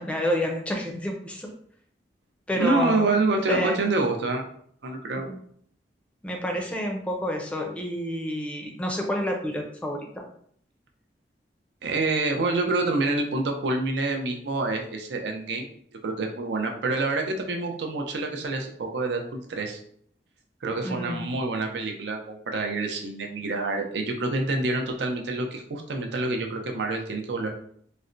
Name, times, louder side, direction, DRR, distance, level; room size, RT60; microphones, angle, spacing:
voice 1, 0.0-1.5 2.5-3.2 3.5-3.8 5.2-5.4 6.2-10.1 20.8-21.3, equal, 5° left, 1 dB, 0.5 m, -29 dB
voice 2, 2.5-4.5 4.8-5.3 11.8-15.7 16.0-19.8 20.6-27.5, right 3 dB, 75° right, 3 dB, 0.5 m, -27 dB
4.0 x 2.1 x 2.5 m, 0.62 s
head